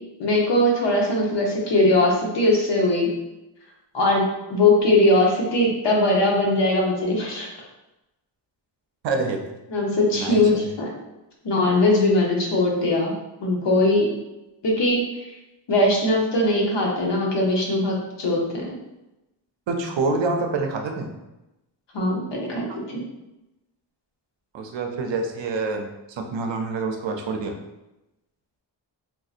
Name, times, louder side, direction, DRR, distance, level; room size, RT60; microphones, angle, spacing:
voice 1, 0.2-3.1 3.9-4.2 4.5-7.5 9.7-10.9 11.4-13.1 13.4-14.1 14.6-15.0 15.7-18.7 21.9-23.0, left 2 dB, 65° left, -2 dB, 0.9 m, -20 dB
voice 2, 9.0-9.4 10.1-10.7 19.7-21.1 24.5-27.6, right 3 dB, 70° right, 4 dB, 0.6 m, -26 dB
3.6 x 2.7 x 2.4 m, 0.97 s
wide cardioid pair, 150°, 46 cm